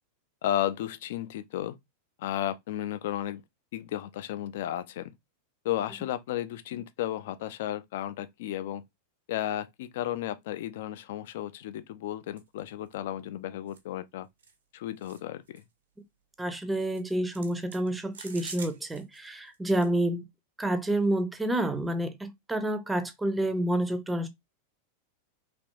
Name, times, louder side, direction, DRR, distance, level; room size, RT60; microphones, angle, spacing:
voice 1, 0.4-1.8 2.2-3.4 3.7-5.1 5.6-8.8 9.3-14.3 14.7-15.6, left 12 dB, 55° left, 0.3 m, -33 dB
sound 1, 12.4-12.6 12.9-13.0 13.7-13.8 14.4-14.6 15.0-15.2 15.5-15.6 16.9-19.3 19.5-19.9, right 5 dB, 65° right, 0.7 m, -46 dB
voice 2, 16.4-20.3 20.6-24.3, right 1 dB, 10° right, 0.5 m, -29 dB
3.3 x 2.9 x 2.5 m
figure-of-eight pair, 90°, 0 cm